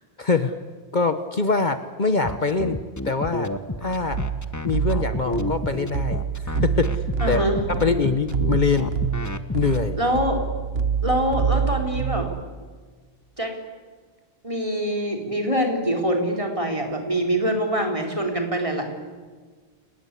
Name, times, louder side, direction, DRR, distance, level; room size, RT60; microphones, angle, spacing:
voice 1, 0.2-0.5 0.9-2.8 3.0-3.5 3.8-4.2 4.6-7.4 7.7-8.9 9.5-10.0, left 4 dB, 45° left, 10 dB, 1.2 m, -24 dB
sound 1, 2.2-9.8, left 2 dB, 15° left, 1.0 m, -30 dB
sound 2, 3.9-12.4, right 7 dB, 70° right, 1.4 m, -27 dB
voice 2, 7.2-7.6 10.0-10.4 11.0-12.3 13.4-13.6 14.4-18.9, equal, 30° right, 2 dB, 4.3 m, -24 dB
29.0 x 20.0 x 8.4 m, 1.5 s
omnidirectional pair, 1.1 m